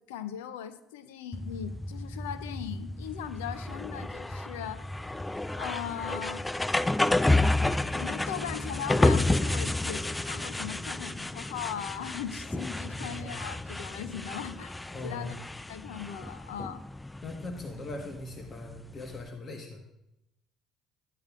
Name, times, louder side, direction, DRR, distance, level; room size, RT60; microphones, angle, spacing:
voice 1, 0.1-4.8 5.5-6.4 7.6-15.4 15.7-16.8, left 9 dB, 85° left, 12 dB, 0.6 m, -39 dB
sound 1, 1.3-19.3, left 2 dB, 10° left, 0.3 m, -31 dB
voice 2, 12.9-13.3 14.9-15.3 17.2-19.8, left 2 dB, 40° left, 3 dB, 1.4 m, -40 dB
12.5 x 8.7 x 2.4 m, 0.88 s
hypercardioid pair, 65°, 0 cm